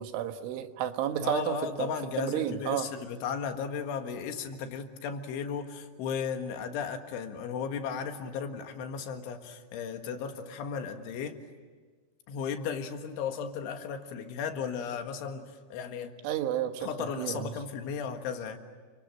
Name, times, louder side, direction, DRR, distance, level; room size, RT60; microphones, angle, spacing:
voice 1, 0.0-1.9 2.2-2.9 16.2-16.9 17.2-17.5, right 10 dB, 90° right, 7 dB, 3.8 m, -31 dB
voice 2, 1.2-11.4 12.3-16.1 16.8-18.6, left 6 dB, 90° left, 6 dB, 4.2 m, -35 dB
30.0 x 25.0 x 7.7 m, 1.5 s
omnidirectional pair, 5.4 m